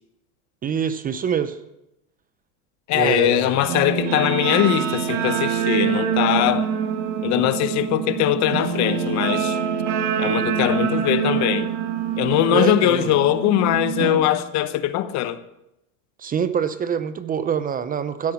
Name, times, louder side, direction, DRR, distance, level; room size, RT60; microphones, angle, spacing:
voice 1, 0.6-1.6 2.9-3.6 12.5-13.1 16.2-18.3, right 7 dB, 20° right, 0.7 m, -25 dB
voice 2, 2.9-6.7 7.2-9.6 10.2-11.7 12.2-15.4, left 13 dB, 45° left, 0.9 m, -21 dB
Guitar, 3.6-14.2, right 8 dB, 75° right, 1.9 m, -25 dB
15.5 x 8.3 x 5.8 m
supercardioid pair, 120°, 38 cm